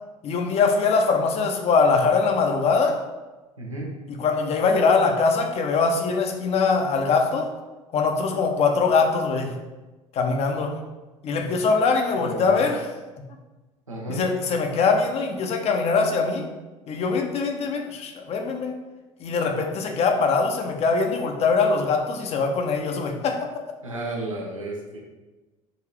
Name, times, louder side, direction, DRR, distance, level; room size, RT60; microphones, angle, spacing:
voice 1, 0.2-3.0 4.1-7.5 7.9-9.5 10.1-10.7 11.2-12.9 14.1-16.4 16.9-18.8 19.2-23.5, left 4 dB, 40° left, 3 dB, 0.6 m, -22 dB
voice 2, 3.6-3.9 12.1-12.7 13.9-14.2 23.8-25.0, right 1 dB, 90° right, -2 dB, 0.7 m, -33 dB
3.9 x 2.7 x 3.1 m, 1.2 s
figure-of-eight pair, 65°, 17 cm